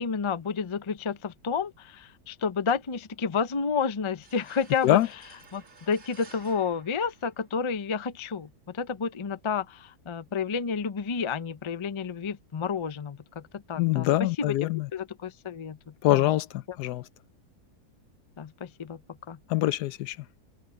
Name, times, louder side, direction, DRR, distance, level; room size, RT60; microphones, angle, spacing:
voice 1, 0.0-5.0 5.5-14.1 14.4-16.3 18.4-19.0 19.3-19.4, left 5 dB, 40° left, 0.4 m, -31 dB
sound 1, 4.2-7.8, right 4 dB, 50° right, 2.3 m, -53 dB
voice 2, 13.8-14.9 16.0-17.0 19.5-20.2, left 15 dB, 85° left, 1.2 m, -24 dB
open air
omnidirectional pair, 1.7 m